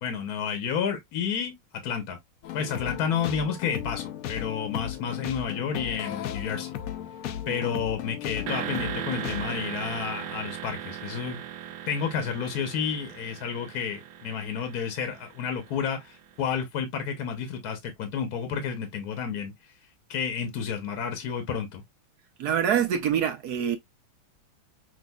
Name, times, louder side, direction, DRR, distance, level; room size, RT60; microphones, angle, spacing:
voice 1, 0.0-1.5 1.8-2.2 2.5-6.7 7.5-11.4 11.9-19.5 20.1-21.8, left 7 dB, 60° left, 1.2 m, -31 dB
sound 1, 2.4-9.6, left 11 dB, 90° left, 0.7 m, -35 dB
sound 2, 8.5-16.2, right 10 dB, 80° right, 1.4 m, -38 dB
voice 2, 22.4-23.8, right 8 dB, 65° right, 1.1 m, -25 dB
6.2 x 2.5 x 2.2 m
omnidirectional pair, 2.1 m